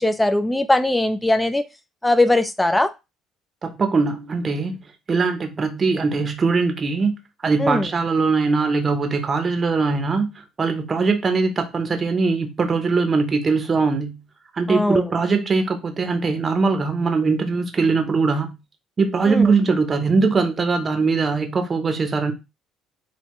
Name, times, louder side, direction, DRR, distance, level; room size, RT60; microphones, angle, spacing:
voice 1, 0.0-1.6 2.0-2.9 7.6-7.9 14.7-15.1 19.3-19.5, left 1 dB, 10° left, 0.4 m, -20 dB
voice 2, 3.6-4.8 5.1-7.2 7.4-10.3 10.6-14.2 14.6-18.6 19.0-22.3, right 4 dB, 35° right, 0.7 m, -21 dB
3.6 x 2.2 x 3.0 m
hypercardioid pair, 60°, 0 cm